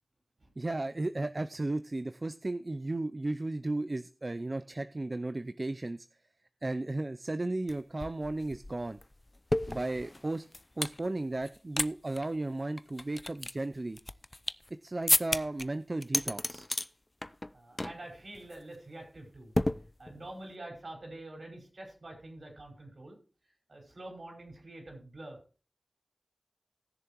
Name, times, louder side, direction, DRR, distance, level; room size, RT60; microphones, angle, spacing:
voice 1, 0.6-6.1 6.6-9.0 9.7-10.5 10.8-14.0 14.8-16.7, right 2 dB, 45° right, 11 dB, 0.5 m, -34 dB
sound 1, 7.7-7.8 8.0-11.0 11.4-11.9 12.1-12.3 12.8-14.7 15.1-15.7 16.0-16.9 17.2-17.5 17.8-18.0 18.4-18.6 19.6-20.3, left 1 dB, 30° left, 0.5 m, -32 dB
voice 2, 17.5-19.5 20.0-23.2 23.4-25.4, right 1 dB, 65° right, 2 dB, 5.2 m, -46 dB
19.0 x 6.9 x 3.0 m, 0.36 s
wide cardioid pair, 45°, 0 cm